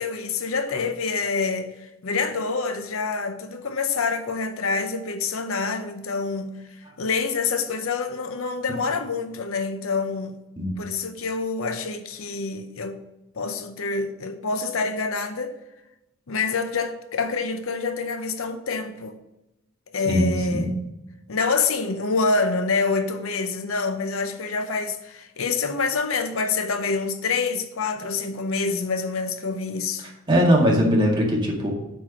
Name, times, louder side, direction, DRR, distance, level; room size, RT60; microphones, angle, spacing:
voice 1, 0.0-6.6 7.0-10.4 10.8-13.0 13.3-15.6 16.3-19.2 19.9-20.8 21.3-30.1, left 4 dB, 80° left, 0.7 m, -26 dB
voice 2, 20.1-20.7 30.3-31.7, equal, 25° right, 1.9 m, -20 dB
7.9 x 4.8 x 6.2 m
head